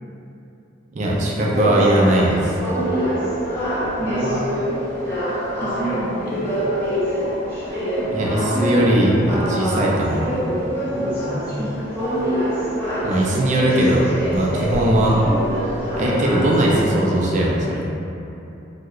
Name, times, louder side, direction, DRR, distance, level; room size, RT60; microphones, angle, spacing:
voice 1, 0.9-2.5 8.0-10.3 13.0-15.2 16.0-17.9, right 1 dB, 40° right, -4 dB, 0.4 m, -19 dB
sound 1, 1.5-17.0, equal, 10° left, 0.6 m, -25 dB
voice 2, 4.0-4.5 5.6-6.5 10.9-11.9 13.3-13.8, equal, 50° left, -6 dB, 0.6 m, -29 dB
2.8 x 2.1 x 3.5 m, 2.9 s
head